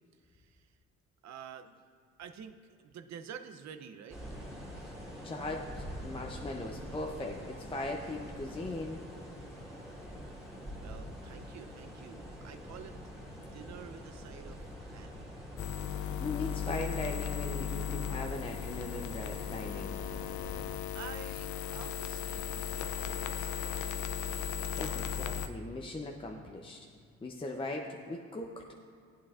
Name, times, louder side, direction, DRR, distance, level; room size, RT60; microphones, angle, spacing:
voice 1, 0.2-0.7 1.2-1.8 2.2-4.2 10.8-15.5 20.9-23.8, right 8 dB, 65° right, 8 dB, 0.7 m, -49 dB
sound 1, 4.1-20.8, equal, ahead, 2.2 m, -46 dB
voice 2, 5.2-9.0 16.2-20.0 24.3-26.8 27.2-28.5, left 2 dB, 20° left, 1 dB, 0.6 m, -39 dB
sound 2, 15.6-25.5, left 9 dB, 75° left, 0.5 m, -36 dB
15.0 x 8.5 x 2.5 m, 2.3 s
cardioid pair, 90°, 30 cm